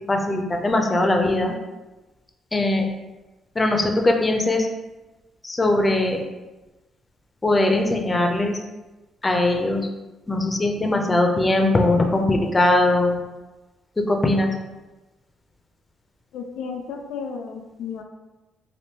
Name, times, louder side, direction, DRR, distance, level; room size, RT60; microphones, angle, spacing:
voice 1, 0.1-1.5 2.5-2.9 3.6-4.7 5.4-6.2 7.4-8.6 9.2-9.9 10.3-13.2 14.0-14.5, left 2 dB, 20° left, 3 dB, 0.5 m, -20 dB
voice 2, 16.3-18.0, left 6 dB, 85° left, 3 dB, 0.3 m, -33 dB
3.4 x 2.5 x 2.8 m, 1.1 s
cardioid pair, 90°, 0 cm